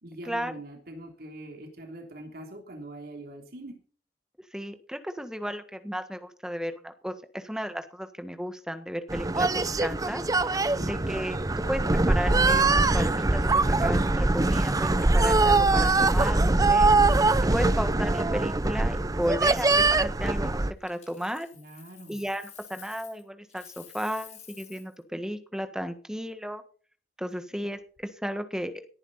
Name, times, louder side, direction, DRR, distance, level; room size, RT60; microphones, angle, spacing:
voice 1, 0.0-3.8 10.7-10.9 21.5-22.2, right 1 dB, 60° right, 3 dB, 3.2 m, -43 dB
voice 2, 4.5-10.2 10.8-16.9 17.5-21.5 22.1-26.6 27.2-28.7, equal, 5° right, 8 dB, 1.5 m, -34 dB
sound 1, 9.1-20.7, right 2 dB, 20° right, 0.6 m, -23 dB
Coin (dropping), 20.8-23.2 23.5-24.9 27.8-28.0, left 9 dB, 40° left, 3.6 m, -50 dB
18.5 x 10.5 x 4.2 m, 0.41 s
head